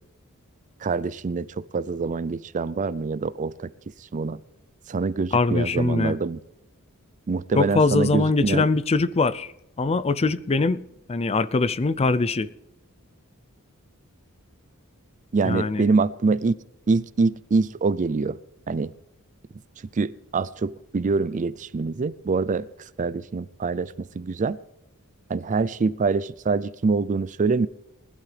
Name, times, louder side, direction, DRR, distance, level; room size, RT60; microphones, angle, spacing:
voice 1, 0.8-1.5 1.7-3.7 4.1-4.4 4.9-6.4 7.3-8.6 15.3-16.5 16.9-18.4 18.7-18.9 20.0-22.7 23.0-24.6 25.3-27.7, right 4 dB, 35° right, 0.4 m, -25 dB
voice 2, 5.3-6.2 7.6-9.5 9.8-10.8 11.1-12.5 15.4-15.8, left 3 dB, 30° left, 0.5 m, -22 dB
20.0 x 12.0 x 3.4 m
head